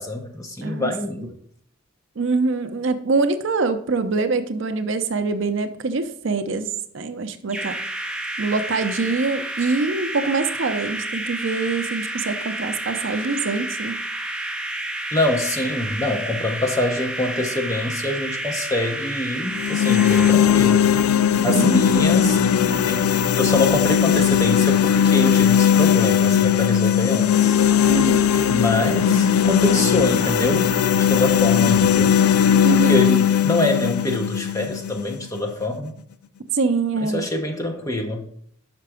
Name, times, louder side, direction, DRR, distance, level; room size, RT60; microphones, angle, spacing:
voice 1, 0.0-1.3 15.1-20.9 21.4-22.4 22.9-23.0 23.4-27.6 28.5-32.1 32.7-35.9 37.0-38.3, left 1 dB, 15° left, 3 dB, 0.8 m, -25 dB
voice 2, 0.6-0.9 2.2-7.8 8.4-14.0 21.5-21.7 27.8-28.2 32.6-33.0 36.5-37.3, right 4 dB, 60° right, 9 dB, 0.5 m, -24 dB
sound 1, 7.5-20.3, right 1 dB, 5° right, 0.3 m, -30 dB
sound 2, 19.5-35.5, left 8 dB, 90° left, 0.4 m, -18 dB
5.9 x 5.7 x 4.9 m, 0.63 s
head